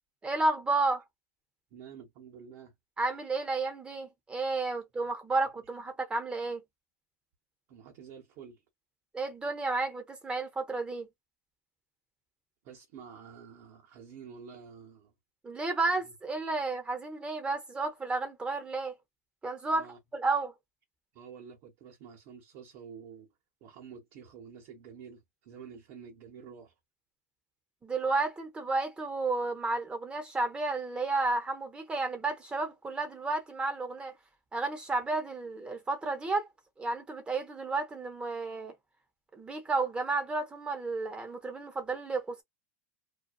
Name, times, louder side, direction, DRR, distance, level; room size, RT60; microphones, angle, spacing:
voice 1, 0.2-1.0 3.0-6.6 9.1-11.1 15.4-19.0 19.4-19.9 20.1-20.5 27.8-34.1 34.5-36.5 36.8-38.7 39.3-42.4, right 3 dB, 15° right, 0.9 m, -32 dB
voice 2, 1.7-2.7 5.0-5.1 7.7-8.6 12.6-15.1 16.0-16.1 19.7-20.0 21.1-23.3 23.6-26.7, right 7 dB, 50° right, 1.1 m, -49 dB
2.6 x 2.2 x 2.4 m
supercardioid pair, 135°, 8 cm